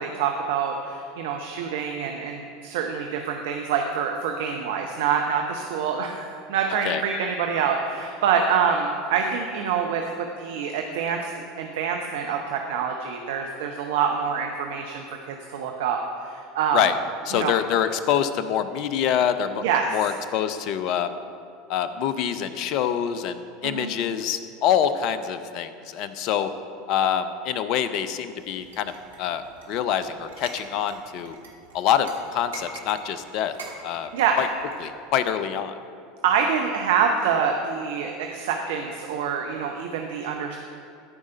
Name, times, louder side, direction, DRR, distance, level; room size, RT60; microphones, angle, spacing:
voice 1, 0.0-16.0 16.2-16.8 17.3-17.5 19.6-20.1 23.6-23.9 34.1-34.4 36.2-40.6, right 6 dB, 65° right, 3 dB, 0.7 m, -26 dB
voice 2, 17.3-19.6 19.9-21.1 21.7-26.5 26.9-28.9 29.2-31.4 31.7-33.5 33.8-34.1 34.4-34.5 34.8-35.7, left 9 dB, 50° left, 12 dB, 0.5 m, -25 dB
sound 1, 28.4-34.9, right 3 dB, 80° right, 1.6 m, -45 dB
13.5 x 4.9 x 5.4 m, 2.5 s
figure-of-eight pair, 75°, 0 cm